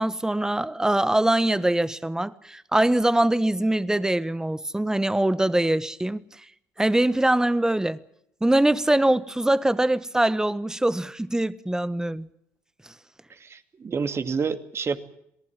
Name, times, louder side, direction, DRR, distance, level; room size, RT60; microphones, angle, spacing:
voice 1, 0.0-6.2 6.8-8.0 8.4-12.3, right 1 dB, 10° right, 1.4 m, -23 dB
voice 2, 13.3-15.0, right 5 dB, 35° right, 2.5 m, -29 dB
28.0 x 19.0 x 7.5 m
hypercardioid pair, 65°, 7 cm